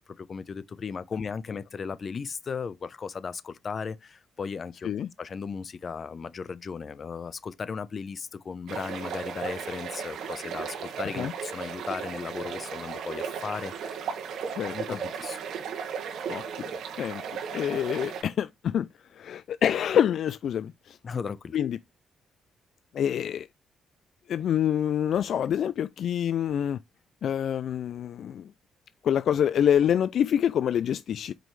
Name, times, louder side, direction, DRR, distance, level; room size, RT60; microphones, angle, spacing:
voice 1, 0.1-4.9 5.2-14.1 14.7-15.4 21.0-21.6, left 5 dB, 45° left, 0.7 m, -36 dB
sound 1, 8.7-18.2, right 6 dB, 75° right, 1.7 m, -35 dB
voice 2, 14.5-15.0 16.3-16.4 17.0-17.2 17.5-18.9 19.1-21.0 21.5-21.8 22.9-23.5 24.3-26.8 27.2-28.5 29.0-31.3, left 9 dB, 65° left, 0.4 m, -26 dB
7.5 x 5.3 x 3.2 m
cardioid pair, 90°, 0 cm